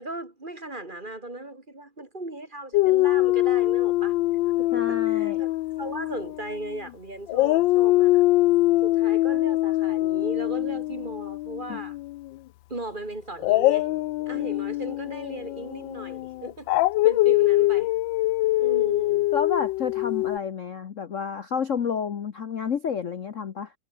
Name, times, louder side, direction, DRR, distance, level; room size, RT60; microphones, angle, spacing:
voice 1, 0.0-4.1 4.6-8.2 8.8-12.0 12.7-13.9 14.3-16.7 17.0-17.9 18.6-19.3, right 2 dB, 25° right, 2.8 m, -37 dB
Dog, 2.7-6.9 7.3-12.3 13.4-20.4, left 17 dB, 75° left, 1.2 m, -23 dB
voice 2, 4.7-5.4 11.7-11.8 19.3-23.7, left 6 dB, 45° left, 1.2 m, -30 dB
omnidirectional pair, 2.2 m